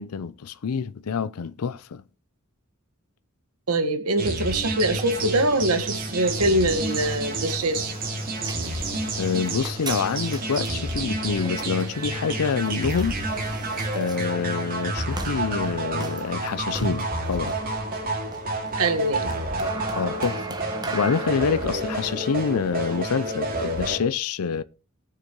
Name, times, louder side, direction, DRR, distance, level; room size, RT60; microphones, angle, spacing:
voice 1, 0.0-2.0 9.2-13.1 13.9-17.6 19.9-20.6 20.9-24.6, left 6 dB, 90° left, 0.5 m, -27 dB
voice 2, 3.7-8.0 18.8-19.3, right 1 dB, 85° right, 1.5 m, -23 dB
sound 1, 4.2-24.0, right 2 dB, 40° right, 2.9 m, -30 dB
sound 2, 4.8-23.9, right 2 dB, 20° right, 1.3 m, -38 dB
19.5 x 6.7 x 3.0 m
head